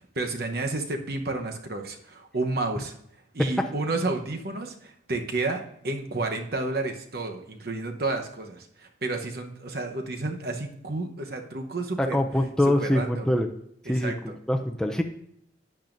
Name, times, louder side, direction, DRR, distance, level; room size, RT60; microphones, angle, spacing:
voice 1, 0.1-2.9 3.3-12.2 12.8-13.3 13.9-14.2, right 2 dB, 55° right, 4 dB, 1.0 m, -31 dB
voice 2, 12.0-13.5 13.8-15.0, left 1 dB, 5° left, 4 dB, 0.5 m, -24 dB
12.0 x 8.7 x 2.6 m, 0.71 s
head